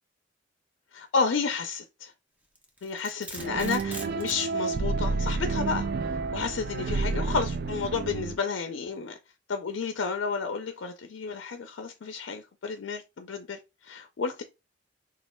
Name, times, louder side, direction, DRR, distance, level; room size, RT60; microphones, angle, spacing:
voice 1, 0.9-2.1 2.8-5.9 6.3-9.2 9.5-14.4, left 5 dB, 85° left, 0.4 m, -31 dB
Domestic sounds home sounds, 2.5-4.5, right 1 dB, 10° right, 0.6 m, -42 dB
sound 1, 3.4-8.4, right 4 dB, 55° right, 0.4 m, -30 dB
3.1 x 2.4 x 4.2 m
head